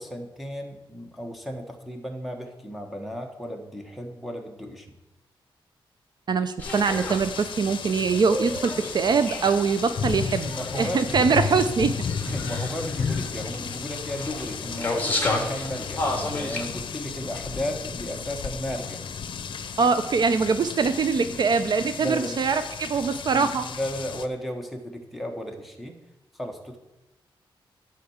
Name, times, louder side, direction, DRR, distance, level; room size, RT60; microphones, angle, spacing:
voice 1, 0.0-4.9 10.4-11.5 12.3-19.0 21.3-21.4 22.0-22.4 23.3-26.0 26.3-26.8, equal, ahead, 3 dB, 1.4 m, -34 dB
voice 2, 6.3-12.0 19.8-23.7, right 5 dB, 50° right, 10 dB, 0.5 m, -23 dB
sound 1, 6.6-24.3, left 6 dB, 65° left, 0.7 m, -34 dB
sound 2, 6.6-16.6, left 2 dB, 20° left, 1.9 m, -33 dB
12.0 x 4.4 x 7.2 m, 0.99 s
wide cardioid pair, 125°, 9 cm